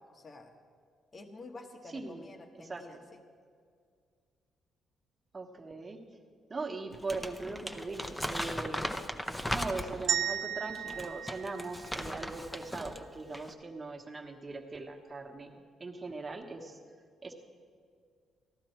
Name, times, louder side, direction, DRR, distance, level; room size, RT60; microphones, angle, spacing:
voice 1, 0.1-0.5 1.1-3.2, left 2 dB, 35° left, 5 dB, 1.1 m, -49 dB
voice 2, 1.9-2.3 2.6-3.0 5.3-6.0 6.5-8.8 9.5-16.8 17.2-17.3, right 3 dB, 30° right, 4 dB, 1.2 m, -40 dB
Crumpling crinkling, 6.9-10.2 10.8-13.0 13.3-13.5, equal, 5° left, 0.7 m, -37 dB
sound 1, 10.1-12.3, right 10 dB, 85° right, 0.5 m, -35 dB
14.5 x 11.5 x 4.5 m, 2.1 s
cardioid pair, 90°, 0 cm